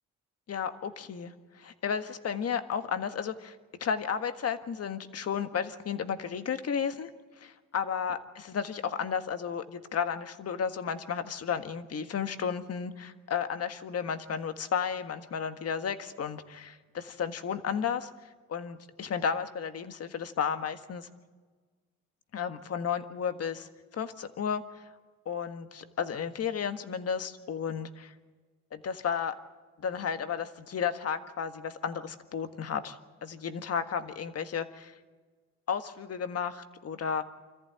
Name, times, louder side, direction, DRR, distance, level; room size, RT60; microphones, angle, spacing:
voice 1, 0.5-7.1 7.4-18.1 18.5-21.1 22.3-24.8 25.2-28.1 28.7-29.4 29.8-34.9 35.7-37.2, left 7 dB, 55° left, 9 dB, 1.6 m, -33 dB
26.0 x 14.5 x 9.3 m, 1.4 s
cardioid pair, 90°, 30 cm